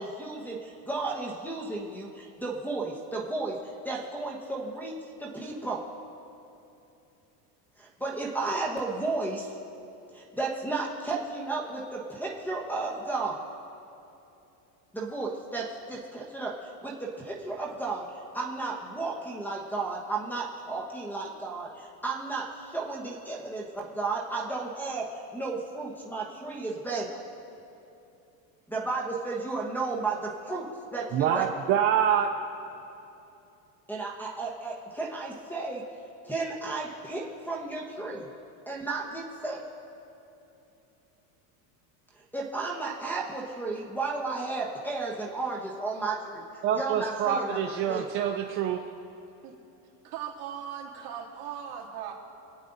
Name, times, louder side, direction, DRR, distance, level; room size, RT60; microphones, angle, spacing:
voice 1, 0.0-4.9 5.2-5.8 7.8-9.5 10.1-13.4 14.9-27.2 28.7-31.4 33.9-35.8 36.2-38.3 38.7-39.6 42.1-47.6 47.9-48.0, right 3 dB, 5° left, -6 dB, 1.1 m, -33 dB
voice 2, 31.1-32.3 46.6-48.9, right 9 dB, 30° right, 3 dB, 0.4 m, -26 dB
voice 3, 50.1-52.1, right 9 dB, 50° right, -4 dB, 3.0 m, -38 dB
27.5 x 9.3 x 4.0 m, 2.8 s
cardioid pair, 165°, 48 cm